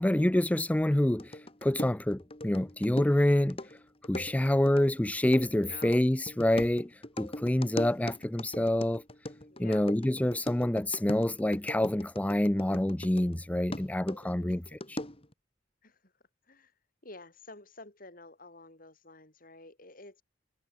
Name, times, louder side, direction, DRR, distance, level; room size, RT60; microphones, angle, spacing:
voice 1, 0.0-3.6 4.1-9.0 9.6-15.0, left 1 dB, 10° left, 0.4 m, -27 dB
sound 1, 1.2-13.4 13.7-15.3, left 1 dB, 30° left, 4.9 m, -41 dB
voice 2, 5.6-5.9 9.5-9.9 14.3-14.8 15.8-15.9 16.5-16.7 17.0-20.2, left 2 dB, 50° left, 6.4 m, -50 dB
head